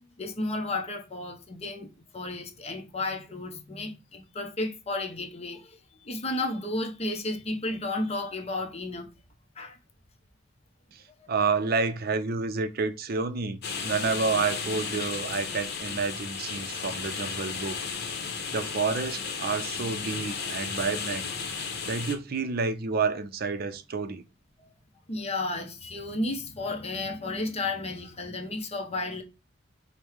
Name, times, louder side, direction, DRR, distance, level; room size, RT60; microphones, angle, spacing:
voice 1, 0.2-9.1 9.6-9.8 24.6-24.7 25.1-29.2, left 2 dB, 35° left, 0.8 m, -33 dB
voice 2, 11.3-17.8 18.5-21.3 21.8-24.2, right 4 dB, 50° right, 0.5 m, -29 dB
sound 1, 13.6-22.1, left 5 dB, 55° left, 1.0 m, -34 dB
5.3 x 2.2 x 4.6 m
head